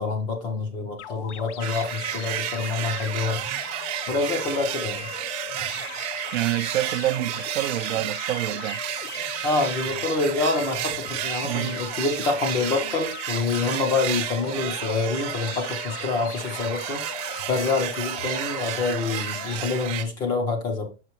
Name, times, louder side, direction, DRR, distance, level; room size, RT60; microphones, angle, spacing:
voice 1, 0.0-3.4 4.1-5.1 9.4-17.1 17.5-20.9, left 3 dB, 10° left, 0.4 m, -26 dB
sound 1, 1.0-19.6, left 10 dB, 70° left, 0.7 m, -39 dB
sound 2, 1.6-20.0, right 12 dB, 35° right, 0.7 m, -32 dB
voice 2, 6.3-8.8 11.4-11.7, right 15 dB, 85° right, 0.5 m, -27 dB
5.9 x 5.8 x 2.9 m
supercardioid pair, 160°, 36 cm